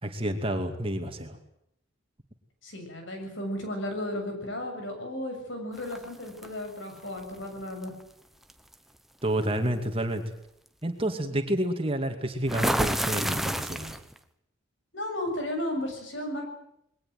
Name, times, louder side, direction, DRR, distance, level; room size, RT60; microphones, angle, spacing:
voice 1, 0.0-1.4 9.2-10.2 10.8-14.0, right 1 dB, 25° right, 5 dB, 2.4 m, -29 dB
voice 2, 2.6-7.9 14.9-16.4, left 1 dB, 60° left, 4 dB, 7.1 m, -34 dB
sound 1, 5.9-6.5 7.8-8.0 8.5-8.7 12.5-14.2, equal, ahead, 1.0 m, -28 dB
22.0 x 18.5 x 9.3 m, 0.76 s
head